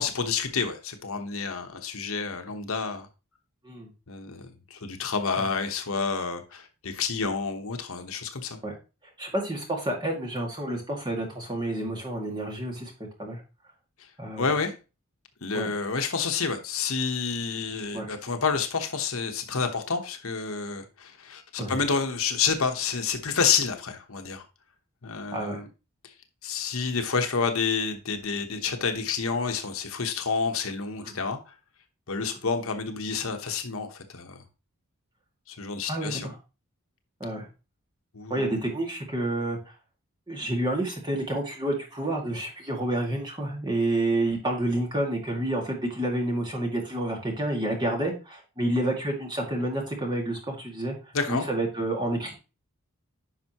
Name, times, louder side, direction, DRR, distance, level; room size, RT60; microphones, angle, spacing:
voice 1, 0.0-3.1 4.1-8.6 14.4-14.7 15.4-24.4 25.0-25.6 26.4-31.5 32.1-34.4 35.5-36.3 38.1-38.6 51.1-51.4, left 5 dB, 70° left, 1.1 m, -29 dB
voice 2, 9.2-12.9 13.2-13.4 14.2-14.5 15.5-15.7 17.9-18.1 21.6-21.8 25.3-25.6 31.0-31.1 35.9-36.4 37.2-37.5 38.3-39.6 40.3-51.0 51.3-52.3, right 1 dB, 20° right, 2.1 m, -29 dB
10.5 x 5.5 x 3.0 m
head